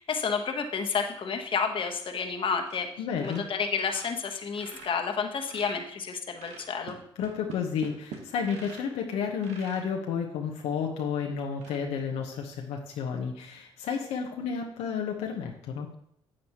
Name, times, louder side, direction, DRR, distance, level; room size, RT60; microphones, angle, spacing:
voice 1, 0.0-2.9 3.2-7.0, left 5 dB, 50° left, 4 dB, 1.2 m, -30 dB
sound 1, 2.0-2.3 2.6-2.9 3.1-5.9 6.4-9.0 9.4-9.9 10.5-10.6 11.0-11.1 11.5-11.8, right 5 dB, 75° right, 1.5 m, -45 dB
voice 2, 3.0-3.4 7.2-15.9, left 6 dB, 75° left, 1 dB, 1.0 m, -31 dB
8.9 x 7.6 x 3.0 m, 0.69 s
hypercardioid pair, 55°, 11 cm